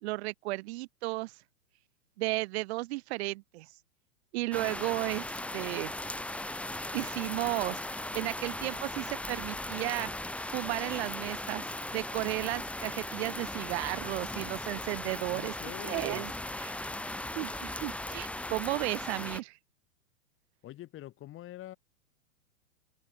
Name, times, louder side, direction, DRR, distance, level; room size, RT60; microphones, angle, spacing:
voice 1, 0.0-1.3 2.2-3.7 4.3-5.2 5.5-5.9 6.9-10.1 10.5-15.5 15.8-16.3 16.6-16.9 17.4-19.6, right 21 dB, 45° right, 5.5 m, -34 dB
sound 1, 4.5-19.4, left 1 dB, 5° left, 3.9 m, -38 dB
voice 2, 15.3-16.2 20.6-21.8, left 14 dB, 30° left, 6.0 m, -45 dB
open air
figure-of-eight pair, 110°, 44 cm